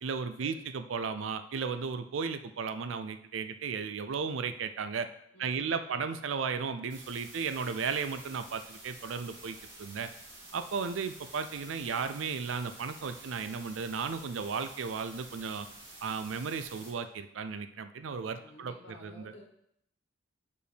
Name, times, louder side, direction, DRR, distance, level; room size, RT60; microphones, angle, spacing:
voice 1, 0.0-5.1 5.4-10.1 10.5-15.7 16.0-19.3, right 5 dB, 90° right, 10 dB, 0.4 m, -35 dB
voice 2, 5.3-6.0 18.3-19.4, left 1 dB, 75° left, 0 dB, 1.4 m, -52 dB
sound 1, 6.9-16.9, right 2 dB, 60° right, 2.2 m, -50 dB
5.1 x 4.6 x 5.0 m, 0.74 s
head